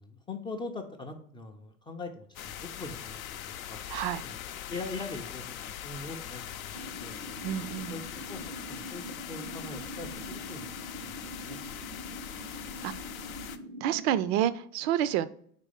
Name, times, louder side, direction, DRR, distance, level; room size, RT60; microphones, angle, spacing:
voice 1, 0.0-3.8 4.2-4.4 4.7-5.5 5.8-7.2 7.8-8.0 8.3-8.4 8.7-10.7 11.0-11.2 11.4-11.8, left 3 dB, 10° left, 4 dB, 0.4 m, -42 dB
sound 1, 2.3-13.6, left 10 dB, 70° left, 0.6 m, -41 dB
voice 2, 3.9-4.2 7.4-8.0 12.8-12.9 13.8-15.2, right 11 dB, 50° right, 15 dB, 0.5 m, -28 dB
sound 2, 6.7-14.3, right 1 dB, 75° right, 0.9 m, -44 dB
4.7 x 4.1 x 5.0 m, 0.62 s
figure-of-eight pair, 80°, 44 cm